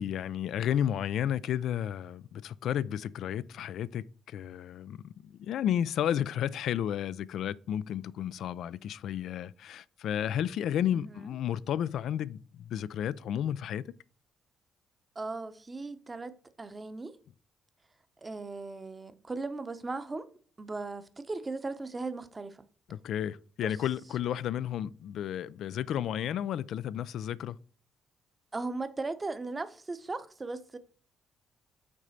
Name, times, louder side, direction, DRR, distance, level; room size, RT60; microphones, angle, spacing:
voice 1, 0.0-13.9 22.9-27.6, left 10 dB, 75° left, 0.3 m, -32 dB
voice 2, 10.9-11.2 15.2-17.1 18.2-20.3 20.6-22.6 23.6-23.7 28.5-30.8, right 3 dB, 25° right, 0.8 m, -37 dB
6.1 x 3.9 x 5.6 m
cardioid pair, 90°, 0 cm